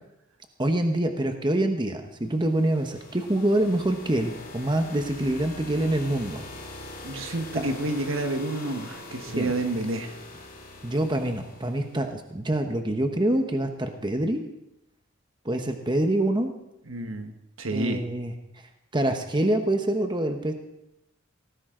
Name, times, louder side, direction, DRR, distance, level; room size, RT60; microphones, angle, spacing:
voice 1, 0.6-6.4 9.4-9.5 10.8-14.4 15.4-16.5 17.7-18.3 18.9-20.5, right 1 dB, 20° right, 6 dB, 1.0 m, -25 dB
sound 1, 2.2-12.1, left 2 dB, 45° left, 3.1 m, -43 dB
voice 2, 7.0-10.2 16.9-18.0, right 2 dB, 75° right, 7 dB, 1.4 m, -29 dB
17.5 x 15.0 x 3.8 m, 0.87 s
head